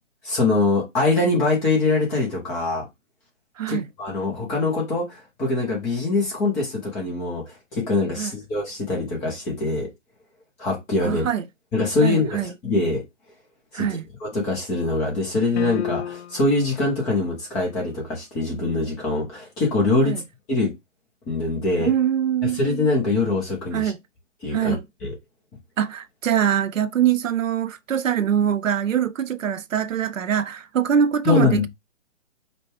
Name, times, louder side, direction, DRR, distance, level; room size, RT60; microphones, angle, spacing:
voice 1, 0.2-2.8 3.7-7.4 7.7-9.9 10.6-11.3 11.7-13.0 13.7-13.9 14.2-20.2 20.5-20.7 21.3-21.9 22.4-23.9 24.4-25.1 31.3-31.7, left 3 dB, 10° left, 0.6 m, -23 dB
voice 2, 3.6-3.9 8.2-8.3 11.0-11.5 12.0-12.5 13.7-14.0 20.0-20.2 21.8-22.6 23.7-24.0 24.5-24.8 25.8-31.7, right 9 dB, 90° right, 0.6 m, -23 dB
sound 1, 15.6-16.6, left 11 dB, 60° left, 0.5 m, -31 dB
5.2 x 2.2 x 4.3 m
hypercardioid pair, 145°, 38 cm